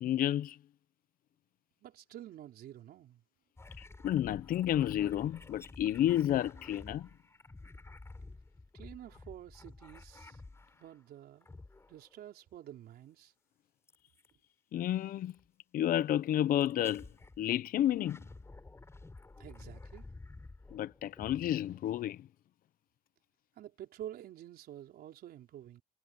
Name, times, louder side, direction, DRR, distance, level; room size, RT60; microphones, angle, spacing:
voice 1, 0.0-0.6 4.0-7.1 14.7-15.3 15.7-17.1 17.4-18.2 20.7-22.3, left 12 dB, 55° left, 0.7 m, -31 dB
voice 2, 1.8-3.2 8.7-10.4 10.8-11.5 11.9-13.3 19.4-20.1 23.6-25.8, right 12 dB, 65° right, 4.4 m, -49 dB
sound 1, 3.6-11.0 11.4-12.2 13.9-14.3 15.3-15.5 16.6-17.4 17.8-22.2, left 2 dB, 15° left, 4.3 m, -52 dB
cardioid pair, 110°, 17 cm